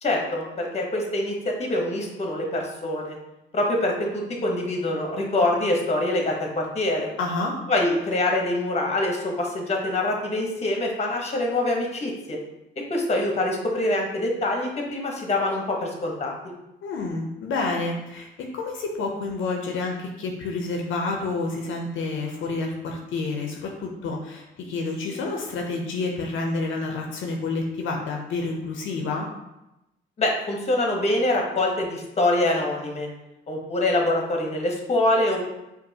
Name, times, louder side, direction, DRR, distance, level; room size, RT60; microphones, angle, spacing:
voice 1, 0.0-3.2 3.5-7.1 7.7-12.4 12.9-16.3 30.2-33.1 33.5-35.4, left 1 dB, 35° left, 1 dB, 0.9 m, -25 dB
voice 2, 7.2-7.6 16.8-29.3, left 3 dB, 75° left, 1 dB, 0.6 m, -29 dB
5.2 x 2.5 x 2.7 m, 0.93 s
cardioid pair, 90°, 20 cm